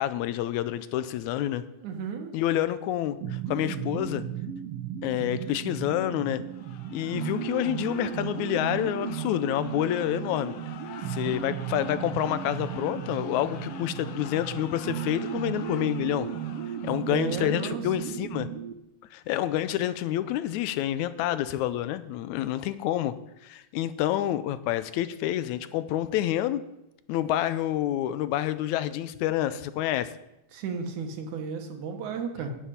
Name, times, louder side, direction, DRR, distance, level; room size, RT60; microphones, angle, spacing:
voice 1, 0.0-1.6 2.3-4.3 5.0-6.4 6.9-10.5 11.1-16.3 16.8-18.5 19.1-23.2 23.4-26.6 27.1-30.1, left 13 dB, 85° left, 13 dB, 2.0 m, -28 dB
voice 2, 1.8-2.3 17.1-18.3 30.5-32.6, right 5 dB, 90° right, 4 dB, 2.9 m, -34 dB
sound 1, 3.2-18.7, right 9 dB, 65° right, 1.7 m, -35 dB
sound 2, 6.5-17.4, left 7 dB, 65° left, 1.7 m, -46 dB
10.0 x 7.3 x 8.8 m, 0.91 s
omnidirectional pair, 3.3 m